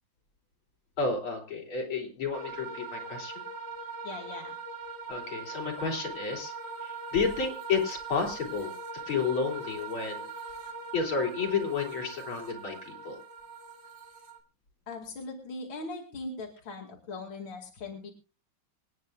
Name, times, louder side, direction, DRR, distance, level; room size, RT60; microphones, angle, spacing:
voice 1, 1.0-3.4 5.1-6.5 6.8-8.7 9.1-10.3 10.9-13.2, left 5 dB, 85° left, 1 dB, 3.9 m, -31 dB
sound 1, 2.3-14.4, right 4 dB, 55° right, 2.9 m, -41 dB
voice 2, 4.0-4.5 14.9-18.1, left 3 dB, 70° left, 0 dB, 3.0 m, -40 dB
26.5 x 9.8 x 2.4 m, 0.34 s
omnidirectional pair, 2.2 m